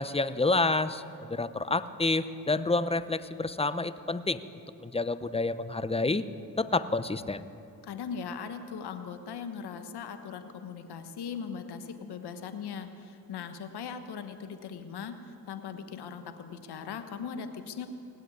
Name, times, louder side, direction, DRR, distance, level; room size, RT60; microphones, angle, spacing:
voice 1, 0.0-4.4 4.8-6.2 6.6-7.4, left 3 dB, 15° left, 14 dB, 0.7 m, -29 dB
voice 2, 7.8-17.9, left 6 dB, 80° left, 8 dB, 1.2 m, -39 dB
18.0 x 7.9 x 9.7 m, 2.6 s
supercardioid pair, 50°, 39 cm